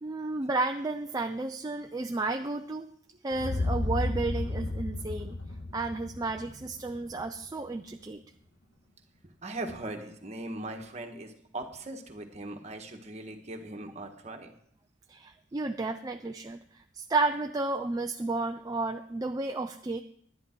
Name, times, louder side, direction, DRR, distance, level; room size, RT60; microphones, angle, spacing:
voice 1, 0.0-2.9 3.2-5.4 5.7-8.2 15.1-20.0, right 3 dB, 20° right, 5 dB, 0.4 m, -32 dB
sound 1, 3.3-7.4, left 2 dB, 70° left, 1.8 m, -33 dB
voice 2, 9.4-14.5, right 2 dB, 35° right, 4 dB, 1.4 m, -39 dB
11.0 x 11.0 x 4.5 m, 0.66 s
head